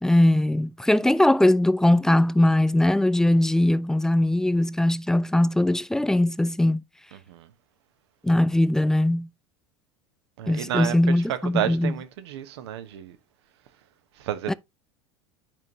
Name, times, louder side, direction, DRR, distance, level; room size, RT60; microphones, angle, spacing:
voice 1, 0.0-6.8 8.2-9.3 10.5-11.9 14.5-14.6, left 1 dB, 5° left, 0.4 m, -20 dB
voice 2, 7.1-7.5 10.4-11.1 11.5-13.2 14.2-14.5, right 11 dB, 65° right, 1.1 m, -31 dB
10.5 x 5.3 x 2.9 m
figure-of-eight pair, 80°, 14 cm